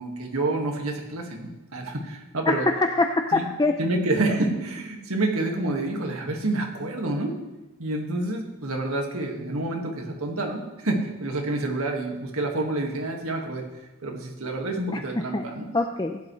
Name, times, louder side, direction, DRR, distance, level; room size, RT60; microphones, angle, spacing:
voice 1, 0.0-2.7 3.3-3.5 3.8-7.4 7.8-13.6 14.0-15.7, right 2 dB, 75° right, 1 dB, 1.9 m, -28 dB
voice 2, 2.5-3.8 14.9-15.0 15.3-15.5 15.7-16.2, left 2 dB, 20° left, 5 dB, 0.5 m, -23 dB
16.0 x 11.0 x 3.2 m, 1.1 s
head